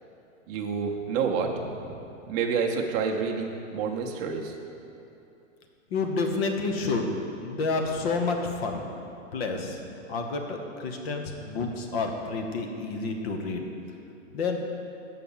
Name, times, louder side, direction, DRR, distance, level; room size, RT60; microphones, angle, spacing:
voice 1, 0.5-1.5 2.3-4.6, right 6 dB, 30° right, 1 dB, 0.8 m, -28 dB
voice 2, 5.9-7.1 7.4-8.8 9.3-9.8 10.1-13.6 14.3-14.6, left 3 dB, 50° left, 4 dB, 1.1 m, -29 dB
7.5 x 5.6 x 7.2 m, 2.8 s
hypercardioid pair, 155°, 39 cm